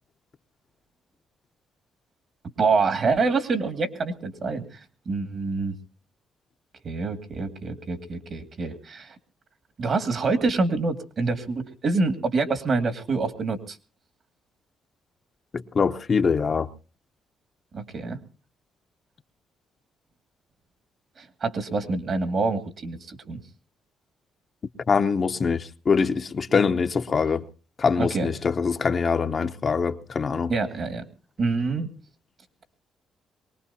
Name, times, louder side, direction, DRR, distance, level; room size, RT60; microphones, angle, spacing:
voice 1, 2.6-5.8 6.8-9.2 9.8-13.8 17.7-18.2 21.2-23.4 28.0-28.3 30.5-31.0 31.4-31.9, right 4 dB, 50° right, 2.2 m, -26 dB
voice 2, 15.5-16.7 24.9-27.4 27.8-30.5, left 5 dB, 40° left, 0.9 m, -23 dB
23.0 x 19.0 x 2.8 m
cardioid pair, 90°, 0 cm